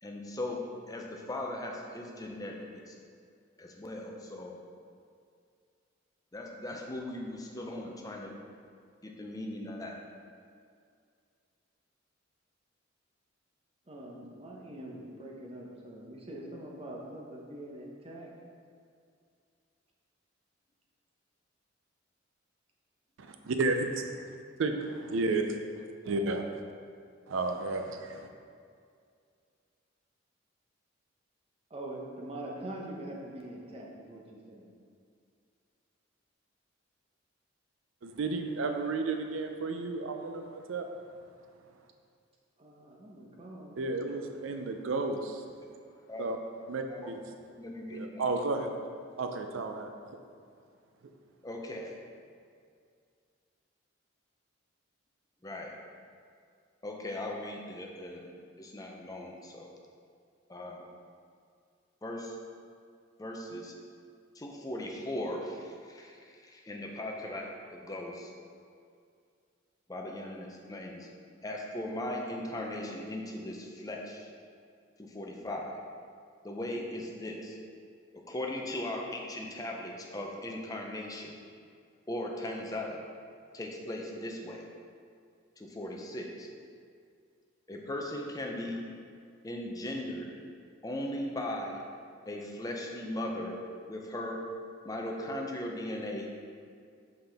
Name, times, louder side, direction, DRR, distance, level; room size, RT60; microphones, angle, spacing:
voice 1, 0.0-3.0 3.6-4.6 6.3-8.4 9.0-10.0 46.1-46.3 46.9-47.1 47.6-48.2 51.4-52.0 55.4-55.8 56.8-58.3 58.6-59.7 60.5-60.8 62.0-62.4 63.2-63.7 64.4-68.3 69.9-71.1 71.4-74.3 75.0-75.7 76.4-77.6 78.1-81.4 82.1-83.0 83.5-84.6 85.6-86.5 87.7-88.8 89.4-90.3 90.8-91.8 92.3-93.6 93.9-94.4 94.8-96.3, left 1 dB, 20° left, 0 dB, 0.5 m, -38 dB
voice 2, 13.9-18.3 31.7-34.7 42.6-43.8, right 1 dB, 30° right, -2 dB, 0.8 m, -43 dB
voice 3, 24.6-25.4 26.0-26.4 27.3-28.3 38.0-40.9 43.8-45.5 46.2-46.4 46.7-47.2 47.9-48.7 49.2-50.2, right 3 dB, 75° right, 5 dB, 0.4 m, -32 dB
5.7 x 5.6 x 3.4 m, 2.3 s
head